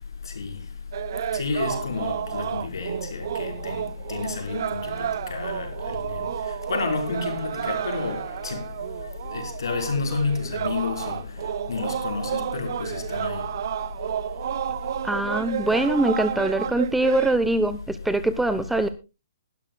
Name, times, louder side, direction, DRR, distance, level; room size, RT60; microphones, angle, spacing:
voice 1, 0.0-15.1 15.6-15.8, left 4 dB, 70° left, 4.8 m, -31 dB
sound 1, 0.9-17.4, right 10 dB, 50° right, 0.7 m, -31 dB
voice 2, 15.0-18.9, right 1 dB, 5° right, 0.8 m, -23 dB
20.5 x 12.5 x 2.3 m
figure-of-eight pair, 130°, 2 cm